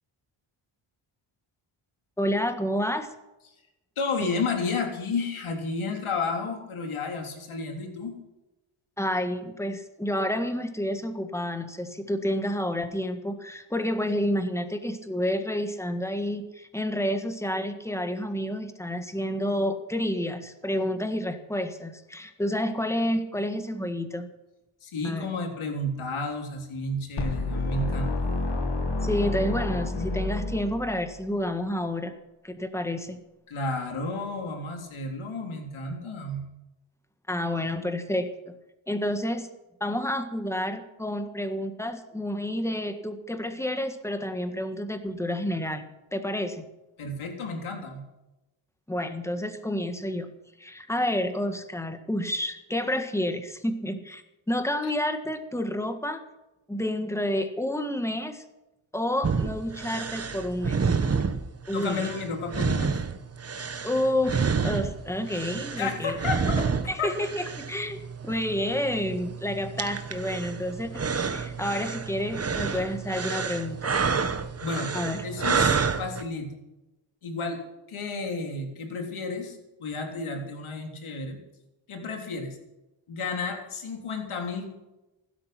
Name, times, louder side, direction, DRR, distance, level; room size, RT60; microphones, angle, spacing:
voice 1, 2.2-3.1 4.2-4.3 9.0-24.3 25.0-25.3 29.0-32.1 32.4-33.2 37.3-38.6 38.9-39.5 39.8-45.9 46.1-46.6 48.9-50.3 50.6-54.2 54.5-56.2 56.7-58.4 58.9-61.0 61.7-62.1 63.8-66.2 66.9-71.0 71.3-73.9 74.9-75.2, left 1 dB, 5° left, 8 dB, 1.6 m, -29 dB
voice 2, 4.0-8.2 24.8-28.3 33.5-36.4 47.0-48.0 54.8-54.9 61.7-63.0 65.8-66.7 67.0-67.1 74.6-74.9 75.2-76.6 77.2-77.6 77.9-81.4 81.9-82.6 83.1-84.7, left 3 dB, 70° left, 3 dB, 3.6 m, -32 dB
sound 1, 27.2-31.2, left 2 dB, 55° left, 2.2 m, -29 dB
sound 2, 59.2-76.2, right 5 dB, 30° right, 1.1 m, -29 dB
16.0 x 12.5 x 5.9 m, 0.99 s
wide cardioid pair, 120°, 50 cm